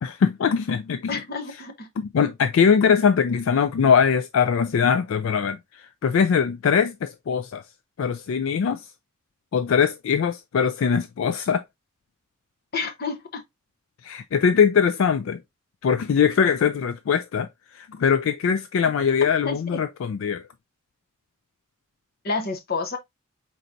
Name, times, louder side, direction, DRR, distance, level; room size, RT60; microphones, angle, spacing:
voice 1, 0.0-1.2 2.0-7.6 8.0-8.9 9.5-11.6 14.0-15.4 15.8-20.4, left 6 dB, 70° left, 0.3 m, -22 dB
voice 2, 1.1-1.9 12.7-13.4 19.4-19.6 22.2-23.0, left 4 dB, 45° left, 0.8 m, -29 dB
4.5 x 4.0 x 2.5 m
head